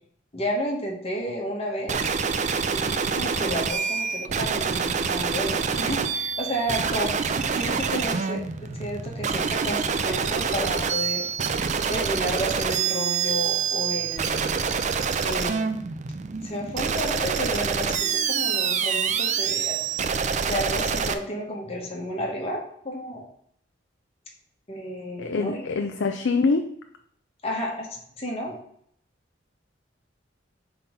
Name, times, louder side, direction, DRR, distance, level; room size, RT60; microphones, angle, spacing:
voice 1, 0.3-2.1 2.7-7.1 7.5-11.3 11.9-14.6 15.2-15.7 16.4-19.8 20.5-22.6 22.8-23.2 24.7-25.9 27.4-28.5, equal, 35° left, -1 dB, 1.7 m, -31 dB
sound 1, 1.9-21.1, right 6 dB, 40° right, 0.4 m, -26 dB
voice 2, 25.2-26.7, left 4 dB, 65° left, 5 dB, 0.5 m, -24 dB
5.8 x 3.9 x 5.4 m, 0.66 s
head